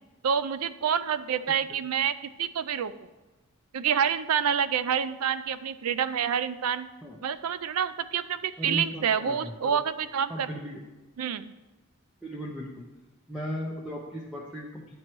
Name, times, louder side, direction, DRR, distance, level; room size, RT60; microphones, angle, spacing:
voice 1, 0.2-2.9 3.7-6.9 7.2-10.5 11.2-11.5, right 8 dB, 90° right, 13 dB, 0.4 m, -28 dB
voice 2, 8.6-9.8 10.3-10.8 12.2-12.9 13.3-14.9, equal, 5° right, -3 dB, 0.7 m, -36 dB
10.5 x 4.4 x 4.5 m, 1.1 s
head